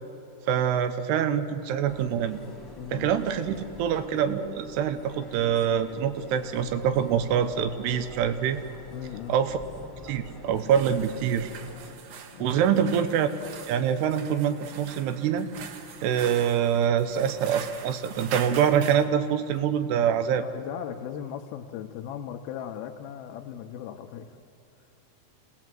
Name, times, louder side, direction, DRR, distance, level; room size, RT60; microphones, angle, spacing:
voice 1, 0.5-2.4 2.9-8.6 9.3-9.6 10.0-11.5 12.4-13.3 13.7-15.5 16.0-20.4, right 8 dB, 90° right, 10 dB, 3.0 m, -25 dB
sound 1, 1.9-11.9, left 2 dB, 10° left, 1.2 m, -46 dB
voice 2, 2.8-3.2 8.9-9.4 12.3-12.8 20.0-24.3, left 9 dB, 75° left, 2 dB, 2.5 m, -38 dB
sound 2, 10.5-19.1, right 7 dB, 65° right, 2.0 m, -42 dB
27.5 x 18.0 x 7.7 m, 2.6 s
omnidirectional pair, 4.7 m